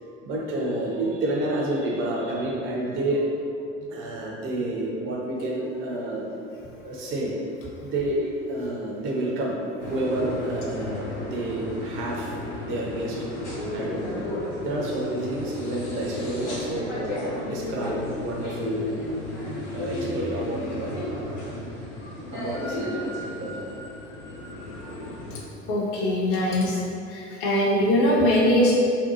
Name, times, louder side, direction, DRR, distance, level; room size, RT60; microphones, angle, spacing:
voice 1, 0.2-3.3 3.8-6.3 6.8-7.3 7.8-13.3 13.7-14.3 14.6-19.1 19.7-21.0 22.3-23.1 23.3-23.6, right 1 dB, 35° right, -2 dB, 0.5 m, -29 dB
sound 1, 9.8-25.4, left 1 dB, 70° left, 0.7 m, -33 dB
voice 2, 25.7-26.8 27.1-28.7, left 1 dB, 40° left, -4 dB, 0.7 m, -21 dB
2.6 x 2.2 x 2.7 m, 2.5 s
figure-of-eight pair, 75°, 36 cm